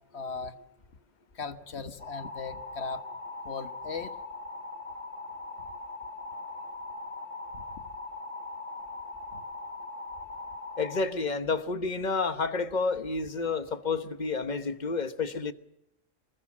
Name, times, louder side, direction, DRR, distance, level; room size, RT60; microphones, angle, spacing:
voice 1, 0.1-0.6 1.3-3.0 3.4-4.2 7.5-7.9 9.3-9.4, left 5 dB, 55° left, 1.5 m, -38 dB
sound 1, 2.0-11.0, left 2 dB, 80° right, 3.5 m, -40 dB
voice 2, 10.8-15.5, left 4 dB, 35° left, 1.2 m, -30 dB
25.0 x 21.0 x 7.4 m
omnidirectional pair, 1.3 m